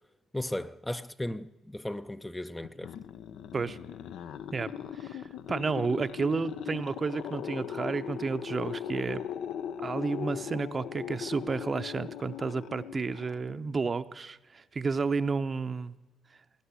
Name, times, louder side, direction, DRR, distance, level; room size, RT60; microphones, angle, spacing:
voice 1, 0.3-2.9, left 1 dB, 10° left, 0.5 m, -36 dB
sound 1, 2.6-13.8, left 9 dB, 80° left, 0.6 m, -39 dB
voice 2, 4.5-5.2 5.5-9.2 9.8-15.9, right 4 dB, 35° right, 0.7 m, -31 dB
18.5 x 9.4 x 8.2 m
cardioid pair, 90°, 0 cm